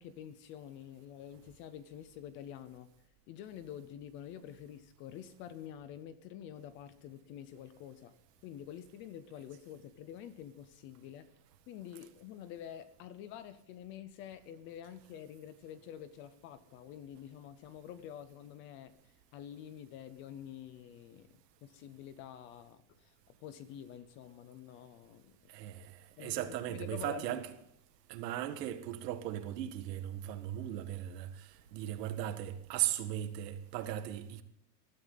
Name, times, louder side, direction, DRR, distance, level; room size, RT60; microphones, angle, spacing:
voice 1, 0.0-2.9 3.3-8.1 8.4-11.3 11.7-23.1 23.4-25.5 26.2-27.4, left 10 dB, 25° left, 0.5 m, -48 dB
voice 2, 25.5-27.5 28.1-34.4, right 12 dB, 85° right, 1.8 m, -37 dB
19.5 x 12.5 x 3.9 m
supercardioid pair, 180°, 48 cm